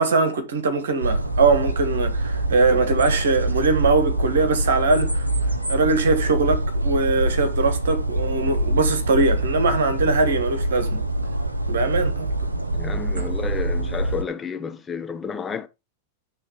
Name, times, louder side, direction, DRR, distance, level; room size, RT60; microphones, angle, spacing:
voice 1, 0.0-5.3 5.7-11.0 11.7-12.5 13.2-13.3, right 3 dB, 65° right, 1.5 m, -21 dB
sound 1, 1.0-14.2, right 1 dB, 80° right, 0.7 m, -25 dB
voice 2, 12.7-15.7, left 6 dB, 15° left, 0.8 m, -31 dB
8.5 x 3.3 x 4.6 m
figure-of-eight pair, 90°, 0 cm